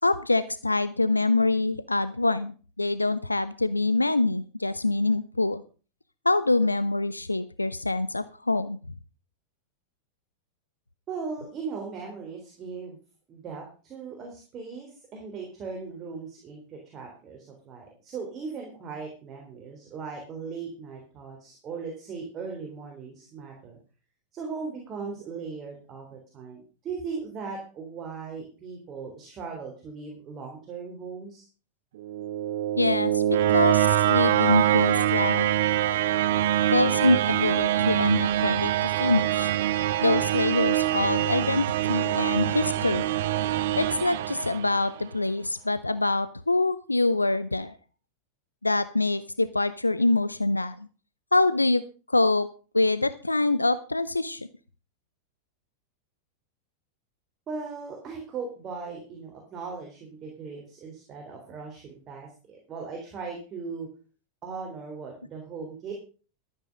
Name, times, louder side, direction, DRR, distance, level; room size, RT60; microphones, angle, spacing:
voice 1, 0.0-5.6 6.2-8.8 32.8-35.5 36.7-39.5 40.0-43.1 43.8-47.8 48.6-50.9 51.3-51.8 52.1-52.5 52.7-54.5, left 2 dB, 85° left, 15 dB, 0.5 m, -25 dB
voice 2, 11.1-13.0 13.3-23.8 24.3-31.5 57.5-63.9 64.4-65.9, right 5 dB, 30° right, 1 dB, 3.6 m, -38 dB
sound 1, 32.0-45.0, right 13 dB, 55° right, 0.7 m, -24 dB
13.0 x 9.2 x 5.2 m, 0.38 s
figure-of-eight pair, 90°, 0 cm